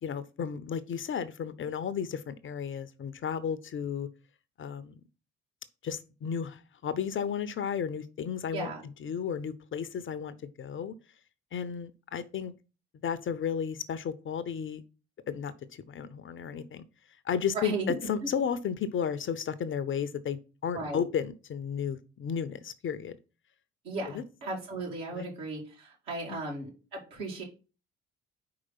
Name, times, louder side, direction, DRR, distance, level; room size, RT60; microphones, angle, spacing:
voice 1, 0.0-4.1 4.6-4.9 5.8-8.7 9.0-10.9 11.5-12.5 13.0-14.8 15.3-16.8 17.2-17.7 18.1-23.2 24.1-24.2 25.1-25.3 26.3-26.4, left 7 dB, 35° left, 0.6 m, -33 dB
voice 2, 8.5-8.8 17.5-17.9 20.7-21.0 23.8-27.4, right 2 dB, 70° right, 2.3 m, -36 dB
4.8 x 4.7 x 5.6 m
figure-of-eight pair, 45°, 36 cm